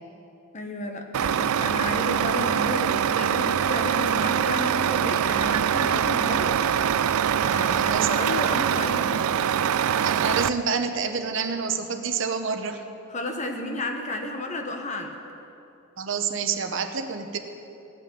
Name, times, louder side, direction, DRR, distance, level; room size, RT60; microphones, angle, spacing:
voice 1, 0.5-6.6 7.4-9.3 13.1-15.2, left 1 dB, 35° left, 4 dB, 1.2 m, -32 dB
Truck, 1.1-10.5, right 8 dB, 85° right, 0.4 m, -23 dB
voice 2, 7.8-8.1 10.0-12.8 16.0-17.4, right 5 dB, 60° right, 7 dB, 0.9 m, -28 dB
16.5 x 5.9 x 9.4 m, 2.8 s
head